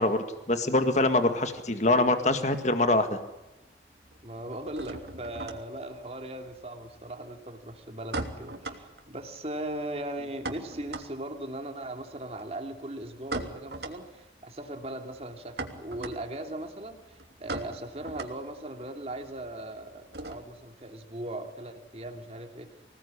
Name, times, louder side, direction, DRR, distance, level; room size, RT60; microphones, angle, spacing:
voice 1, 0.0-3.2, left 2 dB, 40° left, 8 dB, 1.9 m, -24 dB
sound 1, 1.4-2.5 2.7-3.4 3.7-20.7, right 2 dB, 65° right, 3.1 m, -41 dB
voice 2, 4.2-22.7, right 1 dB, 35° right, 5 dB, 3.1 m, -39 dB
26.0 x 18.5 x 10.0 m, 1.0 s
head